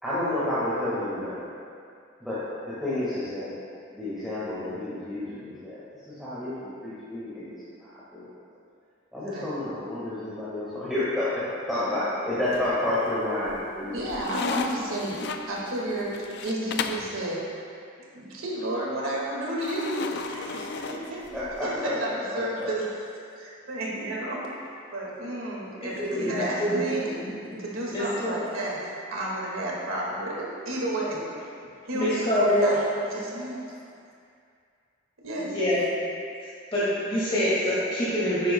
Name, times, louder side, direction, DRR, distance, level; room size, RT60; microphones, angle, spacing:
voice 1, 0.0-1.4 2.2-3.6 3.9-5.8 6.1-8.3 9.1-14.0 21.3-22.7, left 1 dB, ahead, -12 dB, 1.6 m, -30 dB
sound 1, 12.5-13.1 13.5-17.1 19.6-21.6, left 5 dB, 55° left, 0.4 m, -34 dB
voice 2, 13.9-17.6 18.1-21.2 21.6-22.9 23.4-24.5 24.9-27.3 27.6-31.5 31.8-33.8 35.2-35.5, right 1 dB, 90° right, -4 dB, 1.9 m, -32 dB
voice 3, 26.1-26.7 27.3-27.4 27.9-28.4 31.9-32.8 35.5-35.8 36.7-38.5, equal, 25° left, -11 dB, 1.9 m, -25 dB
10.5 x 9.3 x 2.3 m, 2.4 s
head